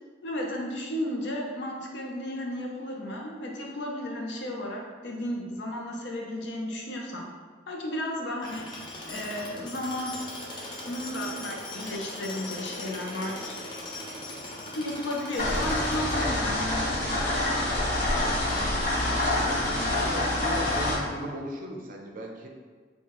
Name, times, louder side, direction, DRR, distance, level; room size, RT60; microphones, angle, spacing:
voice 1, 0.2-7.3 7.7-8.7 9.1-10.1 10.9-13.6 14.7-17.0, left 1 dB, 70° left, 0 dB, 0.6 m, -33 dB
Tools, 8.4-16.7, left 1 dB, 25° left, 0.5 m, -39 dB
sound 1, 15.4-21.0, left 1 dB, 45° left, 1.0 m, -26 dB
voice 2, 19.9-22.5, right 1 dB, 50° right, 1 dB, 0.5 m, -37 dB
4.5 x 2.3 x 2.9 m, 1.5 s
head